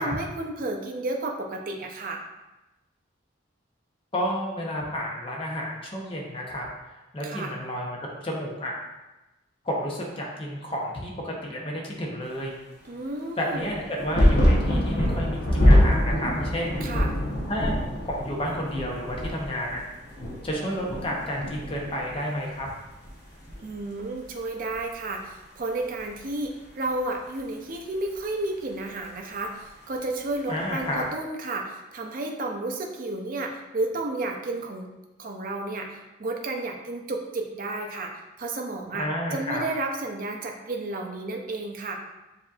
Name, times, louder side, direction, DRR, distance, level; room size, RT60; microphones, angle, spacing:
voice 1, 0.0-2.2 7.2-7.5 12.9-13.7 16.8-17.1 23.6-34.9 35.2-41.9, right 2 dB, 45° right, 2 dB, 0.5 m, -32 dB
voice 2, 4.1-8.7 9.6-12.6 13.4-16.9 17.5-17.7 18.0-19.8 20.4-22.7 30.5-31.0 38.9-39.6, equal, 25° left, -1 dB, 0.7 m, -31 dB
sound 1, 13.6-22.6 22.9-23.8 24.7-24.8, equal, 55° left, 0.9 m, -24 dB
7.0 x 2.7 x 2.4 m, 1.0 s
head